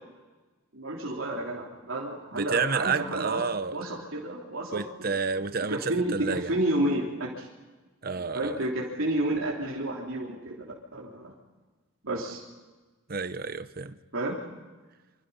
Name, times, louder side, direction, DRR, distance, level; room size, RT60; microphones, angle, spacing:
voice 1, 0.7-3.4 3.7-5.2 5.7-7.5 8.2-10.5 10.9-11.3 12.0-12.4 14.1-14.4, right 1 dB, 80° right, 3.5 m, -30 dB
voice 2, 2.3-3.8 4.7-6.5 8.0-8.6 13.1-14.0, right 5 dB, 45° right, 0.9 m, -30 dB
27.5 x 26.5 x 5.6 m
head